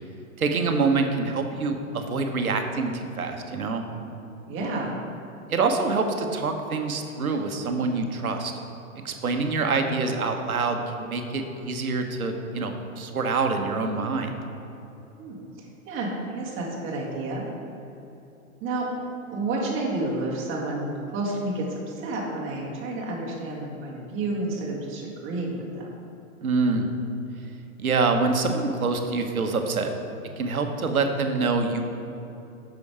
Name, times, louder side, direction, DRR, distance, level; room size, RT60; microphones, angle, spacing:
voice 1, 0.4-3.8 5.5-8.5 9.0-14.3 26.4-26.9 27.8-29.9 30.4-31.8, right 4 dB, 85° right, 5 dB, 1.2 m, -25 dB
voice 2, 4.5-4.9 15.2-17.5 18.6-18.9 19.3-25.9, right 2 dB, 30° right, -3 dB, 1.9 m, -30 dB
8.4 x 6.3 x 4.9 m, 2.9 s
hypercardioid pair, 120°, 42 cm